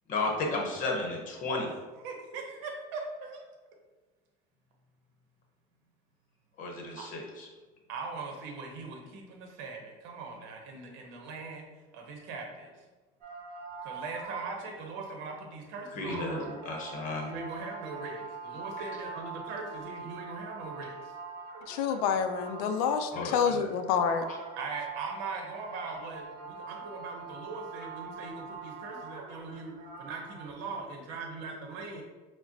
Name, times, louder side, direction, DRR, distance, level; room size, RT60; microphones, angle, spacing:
voice 1, 0.1-1.7 6.6-7.5 15.9-17.3 18.8-18.9 23.1-23.7, left 2 dB, 40° left, 0 dB, 0.9 m, -33 dB
voice 2, 2.0-3.4 7.0-7.1 7.9-11.7 11.9-12.7 13.8-16.5 17.3-20.9 24.6-32.0, right 4 dB, 70° right, 2 dB, 0.8 m, -40 dB
sound 1, 13.2-14.8 15.4-15.5 16.0-23.1 23.5-30.5, right 4 dB, 45° right, 1.0 m, -43 dB
voice 3, 21.7-24.2, left 7 dB, 75° left, 8 dB, 0.4 m, -28 dB
4.7 x 2.1 x 2.7 m, 1.3 s
supercardioid pair, 120°, 20 cm